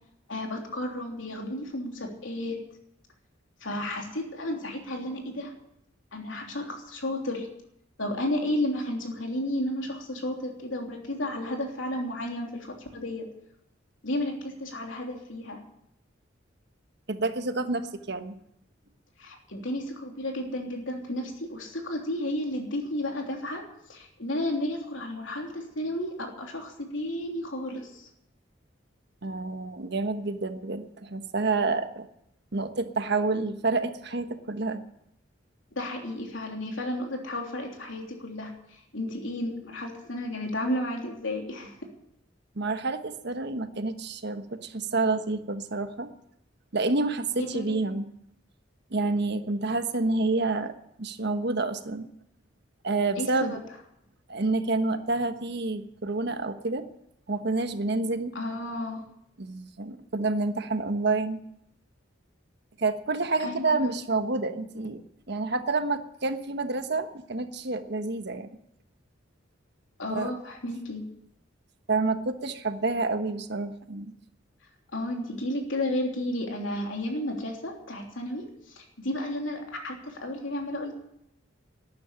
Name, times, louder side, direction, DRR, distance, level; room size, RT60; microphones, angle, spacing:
voice 1, 0.3-2.6 3.6-5.5 6.1-7.5 8.0-13.3 14.0-15.6 19.2-28.1 35.7-41.7 47.4-47.9 53.2-53.6 58.3-59.0 63.4-63.9 70.0-71.0 74.9-80.9, left 1 dB, 85° left, 2 dB, 3.3 m, -32 dB
voice 2, 17.1-18.3 29.2-32.0 32.5-34.8 42.5-46.1 46.7-48.0 48.9-50.7 51.0-52.1 52.8-53.6 54.3-56.8 57.3-58.3 59.4-61.4 62.8-65.0 65.3-68.6 70.1-70.3 71.9-74.1, right 3 dB, 60° right, 8 dB, 1.3 m, -28 dB
12.5 x 9.7 x 10.0 m, 0.78 s
head